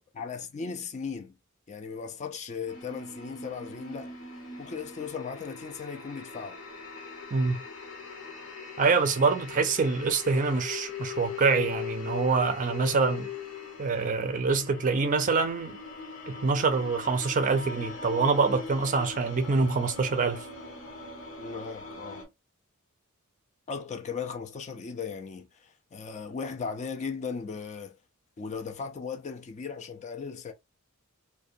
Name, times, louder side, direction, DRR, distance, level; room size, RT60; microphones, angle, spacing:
voice 1, 0.1-1.3 1.7-4.1 4.6-6.6 21.4-22.3 23.7-28.0 28.4-30.5, left 5 dB, 30° left, 0.4 m, -37 dB
sound 1, 2.7-22.3, left 4 dB, 60° left, 0.9 m, -41 dB
voice 2, 7.3-7.6 8.8-13.3 13.8-15.8 16.3-20.4, right 4 dB, 35° right, 0.4 m, -25 dB
2.5 x 2.1 x 2.5 m
head